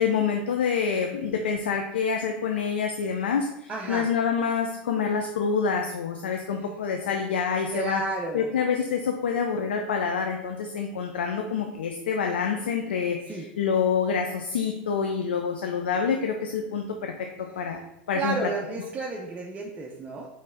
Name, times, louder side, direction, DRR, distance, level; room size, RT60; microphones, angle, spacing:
voice 1, 0.0-8.0 8.3-17.8 18.1-18.5, left 6 dB, 85° left, 3 dB, 0.4 m, -27 dB
voice 2, 3.7-4.1 7.7-8.5 13.3-13.5 18.2-20.3, right 3 dB, 25° right, -2 dB, 0.7 m, -31 dB
4.0 x 3.2 x 3.6 m, 0.87 s
hypercardioid pair, 90°, 6 cm